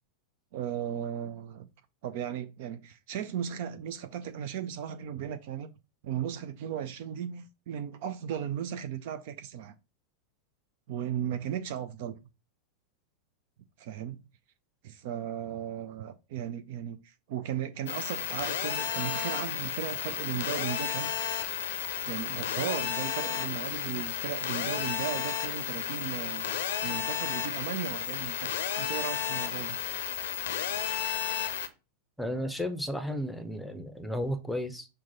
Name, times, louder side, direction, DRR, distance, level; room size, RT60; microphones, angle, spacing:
voice 1, 0.5-1.7 2.0-5.7 6.0-9.7 10.9-12.2 13.8-14.2 14.8-21.1 22.1-26.5 26.8-29.8, right 9 dB, 50° right, 0.3 m, -36 dB
sound 1, 17.9-31.7, left 9 dB, 60° left, 0.5 m, -33 dB
voice 2, 32.2-34.9, equal, ahead, 0.6 m, -33 dB
6.0 x 2.1 x 4.0 m
figure-of-eight pair, 90°, 0 cm